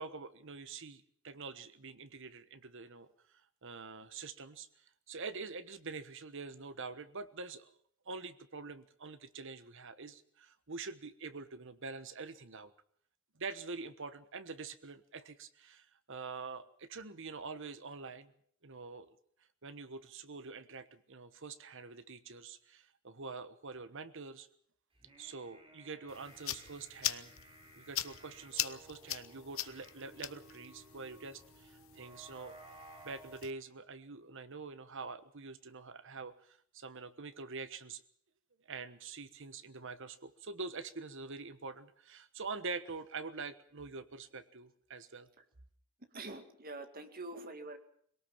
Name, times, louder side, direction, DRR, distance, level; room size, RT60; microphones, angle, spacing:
voice 1, 0.0-3.1 3.6-4.7 5.1-7.7 8.1-12.7 13.3-18.3 18.6-19.1 19.6-24.5 25.2-27.3 27.7-32.6 33.0-38.0 38.7-45.3, right 4 dB, 60° right, 12 dB, 1.3 m, -45 dB
sound 1, 24.9-33.4, right 2 dB, 25° right, 3.7 m, -57 dB
sound 2, 26.1-33.5, left 13 dB, 65° left, 0.9 m, -42 dB
voice 2, 46.1-47.8, right 2 dB, 40° right, 7 dB, 2.2 m, -45 dB
22.0 x 18.0 x 7.3 m, 0.62 s
head